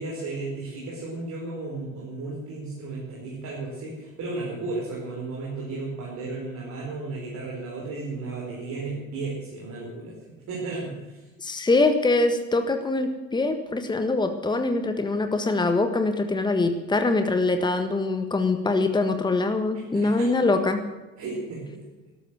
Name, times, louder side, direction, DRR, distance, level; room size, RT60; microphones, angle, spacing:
voice 1, 0.0-11.3 19.9-20.3 21.2-21.9, right 3 dB, 45° right, -4 dB, 5.1 m, -34 dB
voice 2, 11.4-20.8, left 3 dB, 10° left, 7 dB, 1.5 m, -23 dB
13.5 x 12.5 x 7.8 m, 1.1 s
figure-of-eight pair, 65°, 39 cm